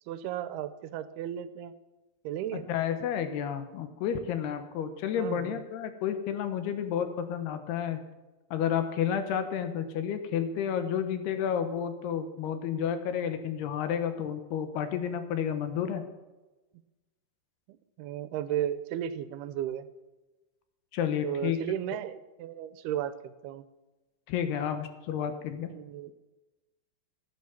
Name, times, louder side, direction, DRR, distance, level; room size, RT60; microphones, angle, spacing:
voice 1, 0.1-1.7 2.2-2.6 5.2-5.6 18.0-19.9 21.2-23.6 25.7-26.1, right 10 dB, 80° right, 13 dB, 2.6 m, -34 dB
voice 2, 2.5-8.0 8.5-16.0 20.9-21.6 24.3-25.7, left 8 dB, 80° left, 9 dB, 3.2 m, -31 dB
15.5 x 9.3 x 7.1 m, 1.1 s
omnidirectional pair, 4.7 m